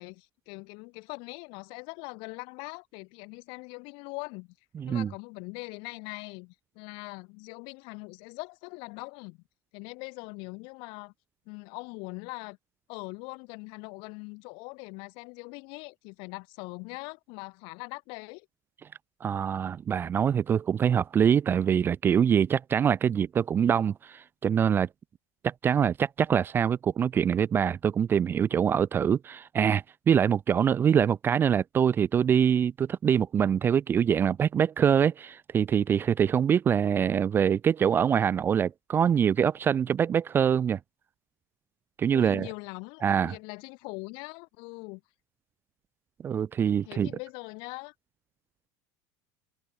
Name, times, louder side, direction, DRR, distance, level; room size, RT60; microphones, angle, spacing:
voice 1, 0.0-4.5 4.9-9.4 9.7-11.1 11.5-12.6 12.9-18.5 42.1-45.0 46.9-47.9, left 31 dB, 60° left, 5.3 m, -42 dB
voice 2, 4.8-5.1 19.2-24.9 25.4-40.8 42.0-42.5 43.0-43.4 46.2-47.1, right 8 dB, 25° right, 0.5 m, -24 dB
supercardioid pair, 145°, 9 cm